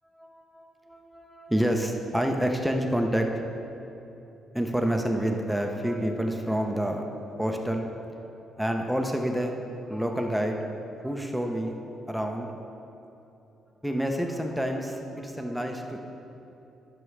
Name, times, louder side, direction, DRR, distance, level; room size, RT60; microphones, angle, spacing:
voice 1, 0.2-3.3 4.5-7.1 7.4-8.0 8.6-9.5 9.9-10.7 11.0-11.8 12.1-12.5 13.8-16.0, equal, ahead, 2 dB, 0.8 m, -28 dB
16.0 x 6.1 x 3.3 m, 2.9 s
cardioid pair, 90°, 0 cm